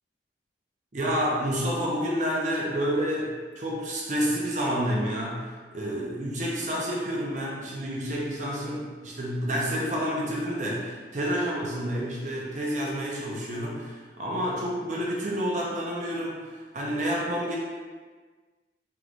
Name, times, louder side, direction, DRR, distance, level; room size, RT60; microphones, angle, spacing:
voice 1, 0.9-17.6, equal, 40° right, -4 dB, 0.6 m, -29 dB
3.6 x 3.1 x 2.5 m, 1.4 s
head